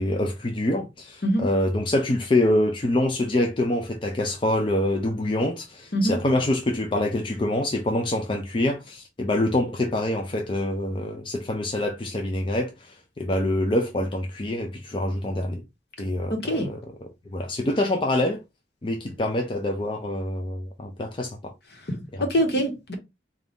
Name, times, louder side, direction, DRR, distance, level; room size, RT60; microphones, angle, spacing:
voice 1, 0.0-15.6 16.0-18.4 18.8-21.5 22.1-22.2, left 1 dB, 30° left, 0.5 m, -26 dB
voice 2, 16.3-16.7 21.9-22.9, equal, 65° left, 1.2 m, -24 dB
3.9 x 2.4 x 3.5 m
head